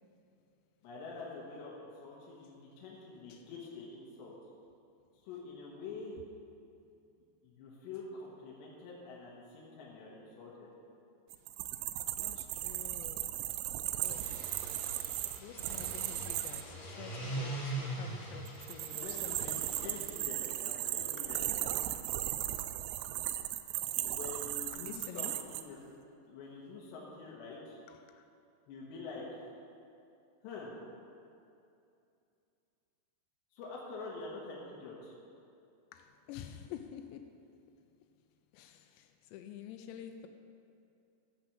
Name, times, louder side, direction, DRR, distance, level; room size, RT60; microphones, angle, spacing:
voice 1, 0.8-4.4 5.2-6.1 7.4-10.7 18.9-21.7 24.0-25.8 26.3-27.8 28.7-29.4 30.4-30.7 33.5-35.2, left 3 dB, 70° left, -5 dB, 3.4 m, -46 dB
sound 1, 11.3-16.6 18.5-25.6, right 14 dB, 90° right, 2.5 m, -37 dB
voice 2, 12.2-13.3 13.9-14.2 15.4-19.9 21.2-21.4 24.7-25.4 27.9-28.3 35.9-37.3 38.5-40.3, left 10 dB, 90° left, 7 dB, 2.5 m, -49 dB
sound 2, 13.9-20.2, right 2 dB, 30° left, 2.8 m, -42 dB
13.0 x 5.9 x 7.2 m, 2.6 s
omnidirectional pair, 5.6 m